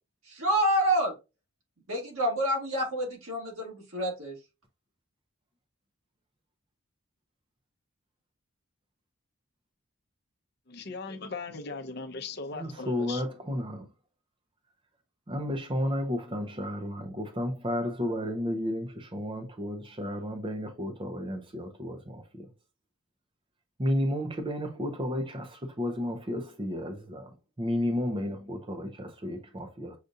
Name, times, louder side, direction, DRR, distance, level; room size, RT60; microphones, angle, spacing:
voice 1, 0.3-1.1 1.9-4.4, right 1 dB, 85° right, 1.8 m, -28 dB
voice 2, 10.7-13.3, left 3 dB, 50° left, 0.6 m, -38 dB
voice 3, 12.5-13.8 15.3-22.5 23.8-27.3 27.6-29.9, left 1 dB, 25° right, 0.7 m, -32 dB
6.5 x 2.4 x 2.6 m
head